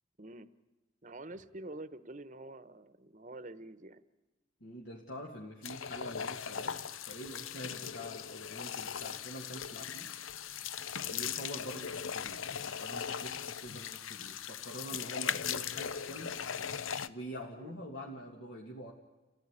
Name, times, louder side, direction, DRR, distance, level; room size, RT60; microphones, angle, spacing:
voice 1, 0.2-0.5 1.0-4.0 17.6-17.7, right 2 dB, 40° right, 15 dB, 1.0 m, -47 dB
voice 2, 4.6-6.8 7.0-10.3 11.1-16.4 17.1-18.9, equal, 65° left, -1 dB, 2.4 m, -45 dB
sound 1, 5.6-17.1, left 8 dB, 85° left, 0.7 m, -39 dB
28.5 x 16.0 x 9.9 m, 1.2 s
head